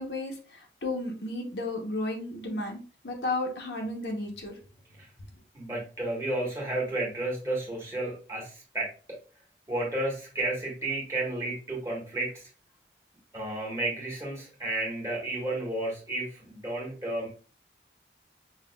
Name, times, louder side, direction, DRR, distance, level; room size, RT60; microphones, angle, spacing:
voice 1, 0.0-4.5, left 2 dB, 75° left, 1 dB, 0.9 m, -33 dB
voice 2, 5.5-8.9 9.7-12.5 13.3-17.3, right 2 dB, 15° right, -4 dB, 1.3 m, -32 dB
5.4 x 2.4 x 2.3 m, 0.37 s
head